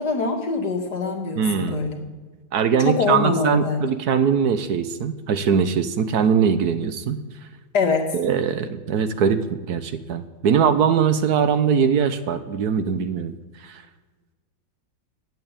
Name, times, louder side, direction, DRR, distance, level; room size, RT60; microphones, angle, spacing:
voice 1, 0.0-2.0 2.8-3.8 7.7-8.1, left 4 dB, 60° left, 2 dB, 2.4 m, -24 dB
voice 2, 1.4-1.9 2.5-7.2 8.1-9.4 9.7-13.3 13.6-13.8, right 7 dB, 60° right, 11 dB, 1.3 m, -21 dB
16.0 x 9.2 x 8.9 m, 1.3 s
omnidirectional pair, 2.0 m